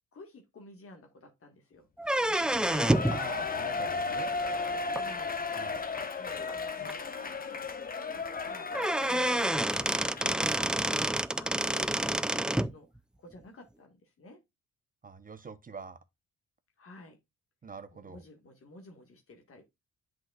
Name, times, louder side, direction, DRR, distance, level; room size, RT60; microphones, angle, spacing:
voice 1, 0.1-1.9 2.2-2.9 4.9-5.4 6.0-12.9 13.2-14.4 16.8-17.2 17.9-19.6, left 2 dB, 45° left, 1.6 m, -52 dB
sound 1, 2.0-3.2 4.9-5.0 6.0-6.1 6.5-6.6 6.9-7.0 8.4-8.5 8.7-12.7, right 1 dB, 5° right, 0.3 m, -28 dB
Shout / Cheering, 2.3-10.6 11.0-11.1, left 4 dB, 30° left, 1.0 m, -35 dB
voice 2, 3.1-4.3 5.5-5.8 15.0-16.0 17.6-18.2, right 5 dB, 30° right, 0.8 m, -44 dB
7.8 x 6.1 x 2.3 m
cardioid pair, 90°, 30 cm